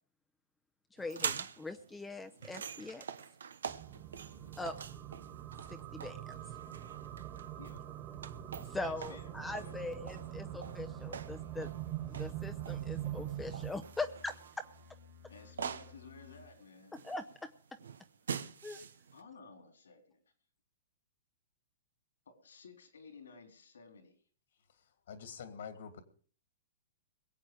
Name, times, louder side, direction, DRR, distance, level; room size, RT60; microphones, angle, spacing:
voice 1, 1.0-3.1 4.6-4.7 5.7-6.2 8.7-11.7 12.1-14.3 17.0-17.2 18.6-18.8, left 2 dB, 10° left, 7 dB, 0.8 m, -41 dB
sound 1, 1.0-19.2, right 7 dB, 85° right, 1.0 m, -45 dB
sound 2, 3.7-13.7, right 12 dB, 30° right, 1.9 m, -43 dB
sound 3, 8.1-16.5, left 3 dB, 60° right, 1.9 m, -57 dB
voice 2, 8.9-10.0 15.3-17.0 19.1-20.2 22.3-24.2, left 4 dB, 85° left, 6 dB, 3.9 m, -55 dB
voice 3, 24.7-26.0, left 6 dB, 70° left, 9 dB, 2.4 m, -47 dB
22.0 x 8.3 x 5.0 m, 0.43 s
hypercardioid pair, 130°, 0 cm